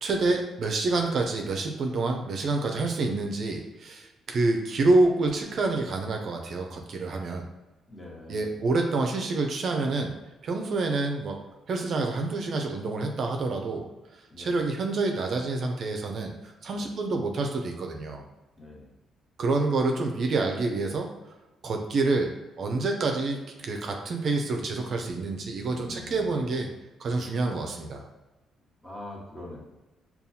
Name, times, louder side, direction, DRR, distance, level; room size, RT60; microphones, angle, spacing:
voice 1, 0.0-7.5 8.3-10.2 10.4-11.4 11.7-13.9 14.4-18.2 19.4-21.1 21.6-22.3 22.6-26.7 27.0-28.0, right 3 dB, 55° right, 3 dB, 0.5 m, -27 dB
voice 2, 7.9-8.6 14.3-14.6 16.7-16.9 18.6-18.9 25.6-26.4 28.8-29.6, left 2 dB, 10° left, -4 dB, 1.4 m, -43 dB
5.4 x 2.3 x 2.7 m, 1.1 s
cardioid pair, 90°, 0 cm